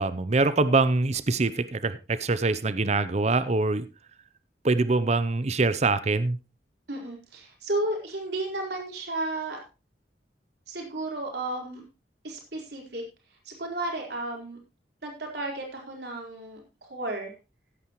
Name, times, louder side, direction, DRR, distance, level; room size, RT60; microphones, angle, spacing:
voice 1, 0.0-3.9 4.6-6.4, right 3 dB, 40° right, 14 dB, 0.7 m, -24 dB
voice 2, 6.9-9.6 10.7-11.8 12.2-13.0 13.4-14.6 15.0-17.3, right 2 dB, 70° right, 0 dB, 4.5 m, -33 dB
16.0 x 9.3 x 3.1 m, 0.28 s
head